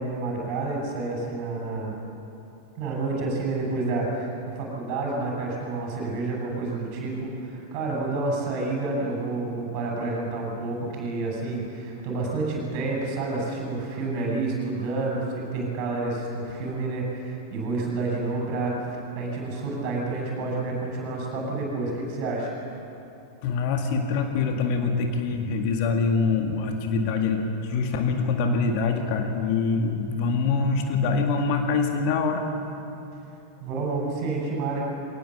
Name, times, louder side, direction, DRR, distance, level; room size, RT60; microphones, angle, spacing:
voice 1, 0.0-1.9 2.8-22.5 33.6-34.9, right 3 dB, 45° right, -1 dB, 6.9 m, -29 dB
voice 2, 23.4-32.4, left 4 dB, 45° left, 4 dB, 2.0 m, -24 dB
22.0 x 19.0 x 7.3 m, 2.9 s
figure-of-eight pair, 90°, 0 cm